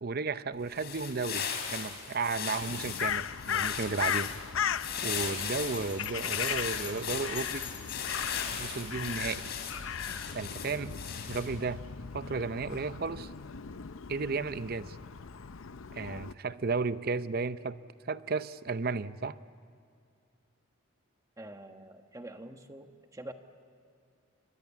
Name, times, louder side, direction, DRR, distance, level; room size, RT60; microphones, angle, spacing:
voice 1, 0.0-4.3 5.0-7.7 8.6-9.5 10.3-11.0 11.3-11.9 12.1-13.3 14.1-15.0 15.9-17.8 18.1-19.4, right 4 dB, 45° right, 14 dB, 0.7 m, -34 dB
sound 1, 0.6-11.6, left 7 dB, 50° left, 3.8 m, -38 dB
Crow, 2.6-16.3, left 8 dB, 70° left, 0.6 m, -37 dB
Bell, 5.7-8.2, left 9 dB, 30° left, 2.3 m, -46 dB
voice 2, 21.4-23.3, right 1 dB, 15° right, 6 dB, 1.3 m, -46 dB
29.5 x 24.0 x 8.5 m, 2.3 s
head